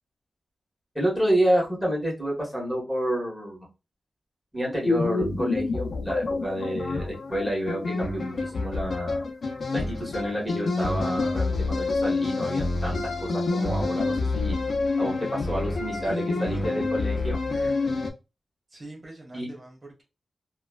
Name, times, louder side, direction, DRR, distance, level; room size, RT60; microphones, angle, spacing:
voice 1, 0.9-3.7 4.5-9.2 9.7-14.6 15.0-17.4 19.3-19.5, equal, ahead, -3 dB, 1.6 m, -29 dB
sound 1, 4.8-18.1, left 3 dB, 65° left, 0.6 m, -27 dB
voice 2, 15.9-16.7 17.4-17.8 18.7-20.0, right 2 dB, 45° right, -1 dB, 1.3 m, -42 dB
3.1 x 2.3 x 2.3 m, 0.28 s
cardioid pair, 70°, 0 cm